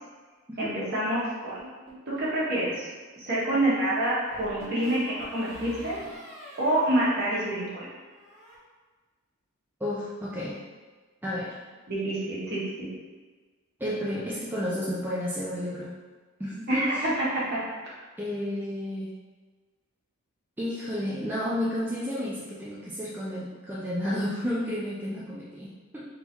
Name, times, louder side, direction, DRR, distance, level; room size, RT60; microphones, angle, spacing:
voice 1, 0.6-1.6 2.1-2.9 3.2-6.0 6.6-7.9 11.9-12.9 16.7-17.6, right 1 dB, 45° right, -8 dB, 1.4 m, -27 dB
sound 1, 1.6-2.4 4.3-7.8 8.1-8.6, right 2 dB, 25° right, 1.5 m, -45 dB
voice 2, 9.8-10.6 11.2-11.6 13.8-15.9 16.4-17.1 18.2-19.1 20.6-26.0, left 1 dB, 10° right, -7 dB, 0.4 m, -31 dB
3.7 x 2.7 x 4.4 m, 1.4 s
head